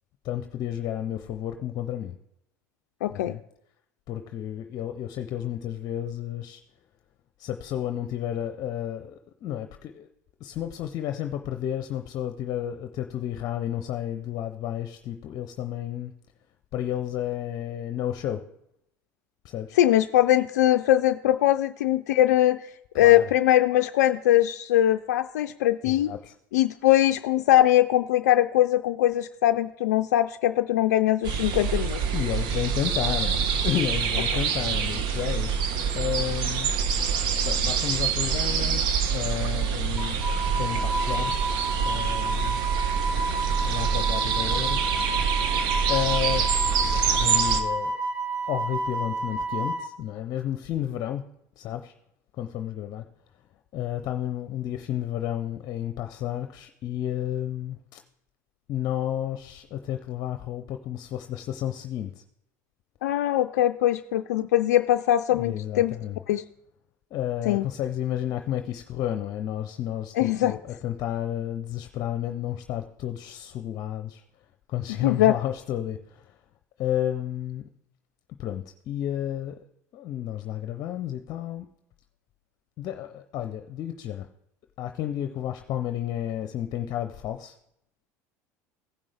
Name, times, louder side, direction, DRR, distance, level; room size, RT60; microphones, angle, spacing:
voice 1, 0.2-2.1 3.1-3.4 4.1-6.6 7.4-10.1 10.4-16.1 16.7-18.4 19.4-19.8 23.0-23.3 25.8-26.3 32.1-35.7 35.9-36.7 37.4-38.8 39.1-42.6 43.7-44.9 45.9-46.5 47.1-48.0 48.5-51.3 51.6-51.9 52.4-53.1 53.7-58.0 58.7-62.2 65.3-66.2 67.1-74.2 74.7-76.3 76.8-77.7 78.4-79.6 79.9-81.7 82.8-84.3 84.8-87.6, left 11 dB, 50° left, 7 dB, 0.7 m, -31 dB
voice 2, 3.0-3.3 19.8-22.6 23.0-26.1 26.5-32.0 63.0-65.9 66.3-66.4 67.5-67.6 70.2-70.6 75.0-75.4, left 13 dB, 85° left, 7 dB, 0.3 m, -21 dB
sound 1, 31.2-47.6, right 6 dB, 60° right, 1.1 m, -26 dB
Wind instrument woodwind instrument, 40.0-49.9, right 2 dB, 20° right, 1.6 m, -30 dB
16.0 x 5.3 x 3.4 m, 0.78 s
hypercardioid pair, 80°, 9 cm